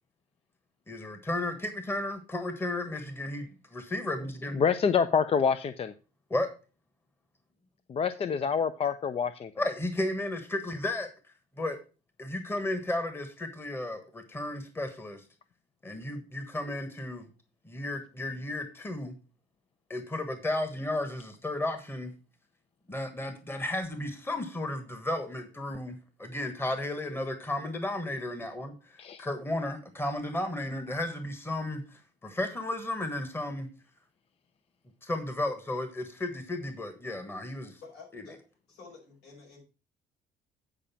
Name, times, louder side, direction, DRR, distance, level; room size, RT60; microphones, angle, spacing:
voice 1, 0.9-4.6 6.3-6.5 9.6-11.1 11.6-11.8 12.2-15.2 15.8-17.3 17.6-19.1 19.9-22.1 22.9-33.7 35.0-37.8 38.1-38.2, left 1 dB, 15° left, 8 dB, 1.4 m, -34 dB
voice 2, 4.5-5.9 7.9-9.5 29.0-29.2, left 6 dB, 35° left, 12 dB, 0.6 m, -27 dB
voice 3, 37.8-38.4 38.7-39.6, left 4 dB, 75° left, -1 dB, 5.5 m, -50 dB
8.9 x 5.1 x 5.6 m, 0.33 s
cardioid pair, 110°, 17 cm